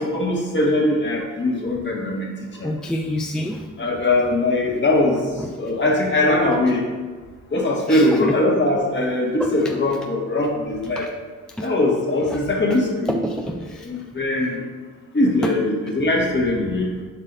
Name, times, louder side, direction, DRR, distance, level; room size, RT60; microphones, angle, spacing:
voice 1, 0.0-2.3 2.6-2.7 3.8-5.2 5.6-6.8 7.5-11.1 11.6-13.2 13.9-14.6 15.1-16.9, left 2 dB, 30° left, -1 dB, 1.6 m, -21 dB
voice 2, 2.6-3.7 5.4-5.5 7.9-8.4 9.4-9.7 11.0-11.1 11.6-11.7 13.1-13.9 15.4-15.5, equal, ahead, 2 dB, 0.3 m, -27 dB
7.5 x 4.9 x 2.6 m, 1.4 s
supercardioid pair, 75°, 34 cm